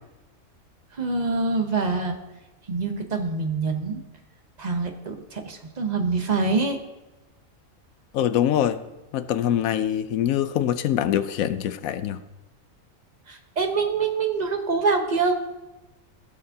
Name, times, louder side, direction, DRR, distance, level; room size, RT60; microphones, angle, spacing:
voice 1, 1.0-2.2 2.7-4.0 4.6-6.8 13.3-15.4, right 4 dB, 35° right, 4 dB, 0.9 m, -25 dB
voice 2, 8.1-8.8 9.1-12.2, left 10 dB, 90° left, 12 dB, 1.0 m, -24 dB
16.0 x 6.6 x 2.8 m, 1.1 s
omnidirectional pair, 1.4 m